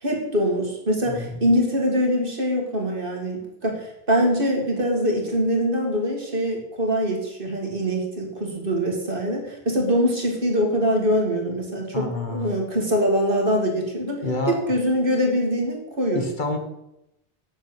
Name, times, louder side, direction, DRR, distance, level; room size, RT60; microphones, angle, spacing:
voice 1, 0.0-16.3, equal, 55° right, 0 dB, 2.4 m, -23 dB
voice 2, 1.1-1.4 11.9-12.5 14.2-14.6 16.1-16.6, left 3 dB, 50° left, 4 dB, 1.5 m, -28 dB
7.6 x 6.8 x 7.9 m, 0.85 s
omnidirectional pair, 1.1 m